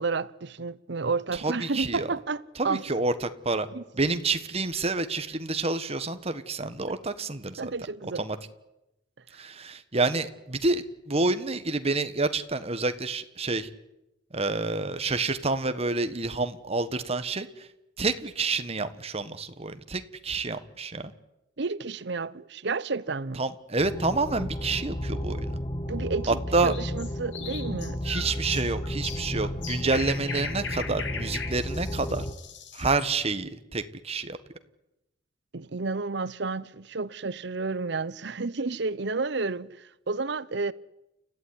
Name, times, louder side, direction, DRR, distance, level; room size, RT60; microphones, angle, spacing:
voice 1, 0.0-2.8 3.7-3.8 7.6-8.2 21.6-23.4 25.8-28.0 35.5-40.7, right 4 dB, 70° right, 0.8 m, -31 dB
voice 2, 1.3-2.1 2.6-3.7 4.0-7.7 8.2-8.4 9.3-13.7 14.3-17.7 18.0-21.1 23.4-25.6 26.3-26.7 28.0-32.2 32.7-34.4, right 3 dB, 35° right, 1.5 m, -28 dB
sound 1, 23.8-32.3, equal, 25° left, 1.1 m, -33 dB
sound 2, 26.5-33.1, left 6 dB, 70° left, 3.0 m, -39 dB
29.5 x 14.5 x 9.8 m
head